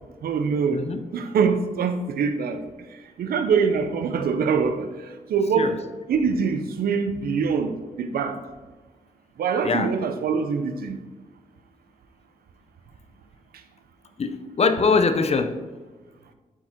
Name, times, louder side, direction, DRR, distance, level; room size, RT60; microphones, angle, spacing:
voice 1, 0.2-0.8 1.1-2.6 3.2-4.9 5.3-5.8 6.1-8.4 9.4-11.0, right 6 dB, 85° right, 9 dB, 0.6 m, -24 dB
voice 2, 14.2-15.7, left 4 dB, 45° left, 10 dB, 0.6 m, -22 dB
7.7 x 4.6 x 4.3 m, 1.3 s
cardioid pair, 75°, 15 cm